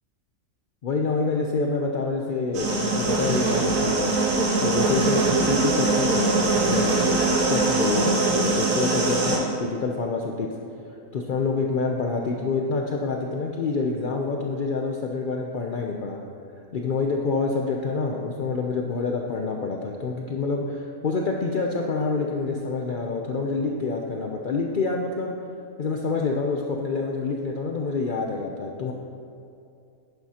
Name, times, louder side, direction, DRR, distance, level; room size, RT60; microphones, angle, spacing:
voice 1, 0.8-4.1 4.6-6.4 6.7-7.0 7.5-10.5 11.1-16.2 16.7-25.3 25.8-28.9, left 4 dB, 70° left, 0 dB, 0.4 m, -27 dB
sound 1, 2.5-9.4, right 3 dB, 60° right, 1.6 m, -22 dB
11.0 x 9.6 x 2.9 m, 2.6 s
omnidirectional pair, 1.6 m